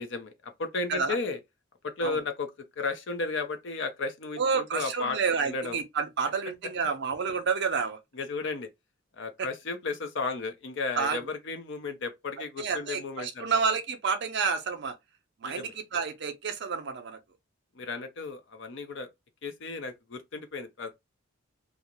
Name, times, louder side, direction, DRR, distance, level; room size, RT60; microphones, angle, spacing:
voice 1, 0.0-1.4 1.8-2.5 2.8-5.8 8.1-8.7 9.1-13.6 15.4-15.7 17.7-19.1 19.4-21.0, left 3 dB, 60° left, 0.5 m, -34 dB
voice 2, 4.4-8.0 11.0-11.2 12.6-14.9 15.4-17.2, right 5 dB, 55° right, 0.5 m, -29 dB
2.4 x 2.0 x 2.8 m
head